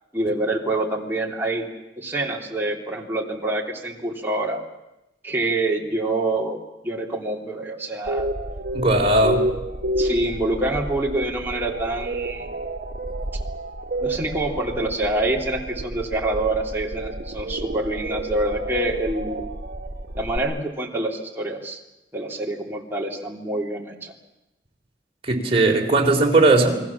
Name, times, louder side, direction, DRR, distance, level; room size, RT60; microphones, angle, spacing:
voice 1, 0.1-1.7 2.0-4.6 5.2-6.6 6.8-8.3 9.8-12.5 14.0-19.4 20.1-21.8 22.1-24.1, right 2 dB, 10° right, -1 dB, 3.2 m, -26 dB
sound 1, 8.1-20.4, right 1 dB, 55° right, 2.1 m, -30 dB
voice 2, 8.7-9.4 25.2-26.8, right 2 dB, 30° right, 1 dB, 3.8 m, -18 dB
29.0 x 21.5 x 7.3 m, 0.94 s
head